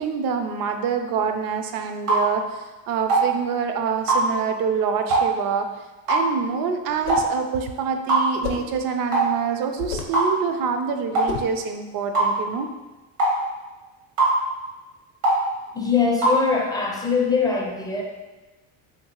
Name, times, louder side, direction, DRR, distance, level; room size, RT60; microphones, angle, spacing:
voice 1, 0.0-5.7 6.1-12.7, right 6 dB, 50° right, 6 dB, 0.5 m, -26 dB
sound 1, 2.1-2.3 3.1-3.3 4.1-4.3 5.1-5.3 6.1-6.3 7.1-7.3 8.1-8.3 9.1-9.3 10.1-10.3 11.1-11.3 12.1-12.3 13.2-13.4 14.2-14.4 15.2-15.4 16.2-16.4, right 2 dB, 85° right, 1.2 m, -19 dB
sound 2, 6.9-7.4 8.4-8.8 9.8-10.2 11.3-11.6, left 5 dB, 85° left, 0.6 m, -31 dB
voice 2, 15.7-18.0, left 5 dB, 10° left, -2 dB, 0.5 m, -22 dB
3.0 x 2.9 x 2.8 m, 1.2 s
supercardioid pair, 95°, 46 cm